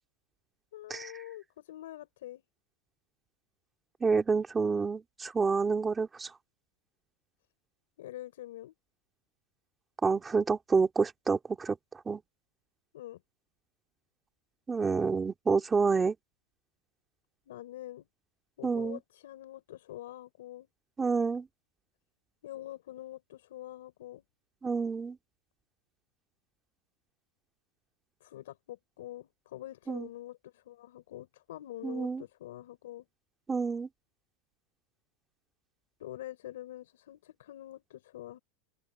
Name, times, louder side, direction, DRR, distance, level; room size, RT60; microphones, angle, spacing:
voice 1, 0.7-2.4 8.0-8.7 12.9-13.2 17.5-18.1 18.6-20.7 22.4-24.2 28.2-33.1 36.0-38.4, left 14 dB, 85° left, 5.4 m, -45 dB
voice 2, 4.0-6.3 10.0-11.8 12.1-12.2 14.7-16.1 18.6-19.0 21.0-21.5 24.6-25.2 29.9-30.1 31.8-32.2 33.5-33.9, right 4 dB, 10° right, 2.5 m, -28 dB
supercardioid pair, 170°, 0 cm